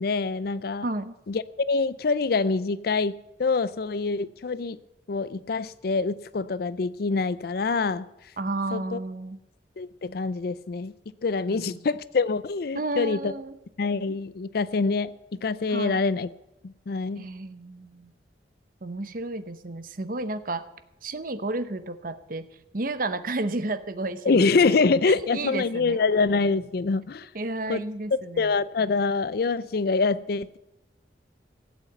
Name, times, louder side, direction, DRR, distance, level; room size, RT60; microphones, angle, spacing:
voice 1, 0.0-0.9 1.3-4.8 5.1-8.1 8.7-9.0 9.8-10.9 11.2-13.3 13.8-16.3 16.6-17.2 24.3-27.3 27.7-27.8 28.4-30.6, left 4 dB, 55° left, 0.5 m, -25 dB
voice 2, 0.8-1.2 8.4-9.4 11.5-11.9 12.7-13.6 15.7-16.0 17.2-18.1 18.8-20.6 21.0-22.5 22.7-24.8 25.1-26.0 27.3-28.6, right 2 dB, 50° right, 0.9 m, -32 dB
16.0 x 8.3 x 8.0 m
head